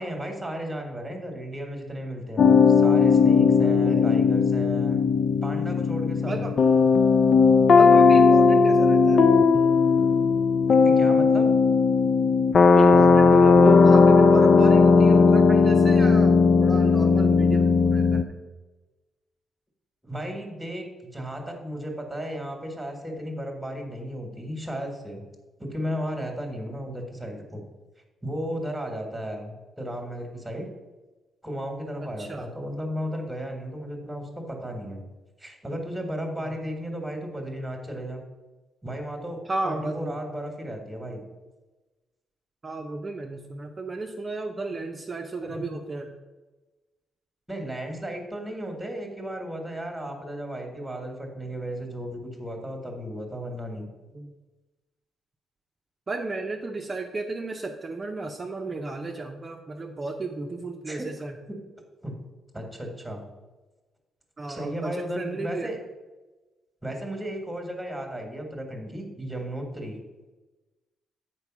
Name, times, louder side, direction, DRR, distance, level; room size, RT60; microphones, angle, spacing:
voice 1, 0.0-5.1 5.4-6.5 10.7-11.5 20.0-25.2 25.6-27.6 28.2-30.7 31.4-35.0 35.4-38.2 38.8-41.2 45.4-45.6 47.5-53.9 60.9-61.1 62.0-62.1 62.5-63.2 64.5-65.8 66.8-70.0, equal, 5° right, 3 dB, 1.5 m, -34 dB
sound 1, 2.4-18.2, left 4 dB, 45° left, 0.4 m, -17 dB
voice 2, 3.7-4.2 6.3-6.5 7.7-9.2 12.7-18.2 32.0-32.5 36.4-36.5 39.5-40.2 42.6-46.1 54.1-54.3 56.1-61.4 64.4-65.7, right 3 dB, 25° right, 2 dB, 0.6 m, -33 dB
8.2 x 4.5 x 6.0 m, 1.2 s
cardioid pair, 130°, 0 cm